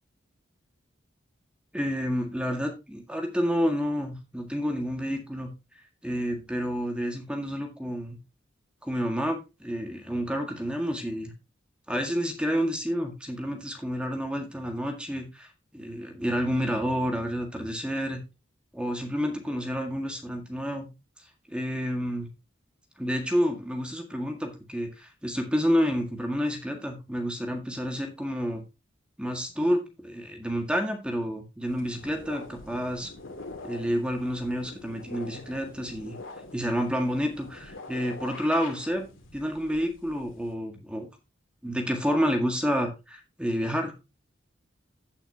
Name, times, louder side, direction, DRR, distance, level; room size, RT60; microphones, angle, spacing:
voice 1, 1.7-5.5 6.0-8.2 8.8-11.3 11.9-15.5 15.7-18.2 18.7-20.9 21.5-22.3 23.0-28.6 29.2-33.1 33.6-36.2 36.5-39.1 39.3-41.1 41.6-43.9, equal, 5° right, 3 dB, 1.8 m, -29 dB
sound 1, 31.7-40.5, left 2 dB, 85° left, 2.4 m, -45 dB
16.5 x 5.8 x 2.8 m, 0.26 s
head